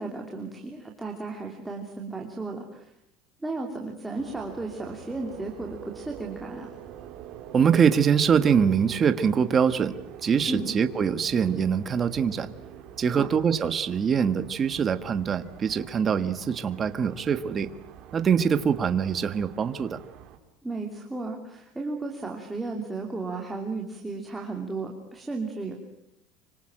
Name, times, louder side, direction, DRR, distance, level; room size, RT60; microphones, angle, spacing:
voice 1, 0.0-2.9 3.4-6.7 10.5-10.8 13.1-13.3 20.6-25.7, right 3 dB, 5° right, 0 dB, 2.9 m, -34 dB
sound 1, 4.2-20.4, right 9 dB, 45° right, 4.0 m, -45 dB
voice 2, 7.5-9.9 10.2-12.5 13.0-17.7 18.1-20.0, right 7 dB, 25° right, 10 dB, 1.4 m, -23 dB
26.0 x 25.0 x 8.8 m, 0.77 s
cardioid pair, 155°, 0 cm